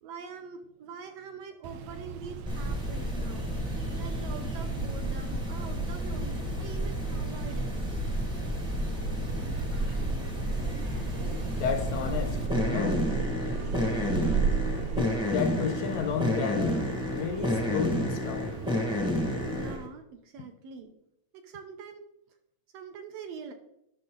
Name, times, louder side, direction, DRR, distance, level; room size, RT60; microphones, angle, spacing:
voice 1, 0.0-3.5 3.9-8.0 19.5-20.9 21.3-22.1 22.7-23.5, right 5 dB, 70° right, 1.7 m, -44 dB
sound 1, 1.6-19.8, right 6 dB, 85° right, 1.2 m, -36 dB
sound 2, 2.5-19.9, left 1 dB, 5° right, 0.6 m, -31 dB
sound 3, 7.0-18.2, right 1 dB, 45° right, 0.9 m, -43 dB
voice 2, 11.6-13.1 14.8-18.6, left 7 dB, 75° left, 1.7 m, -32 dB
12.0 x 6.1 x 3.8 m
omnidirectional pair, 3.4 m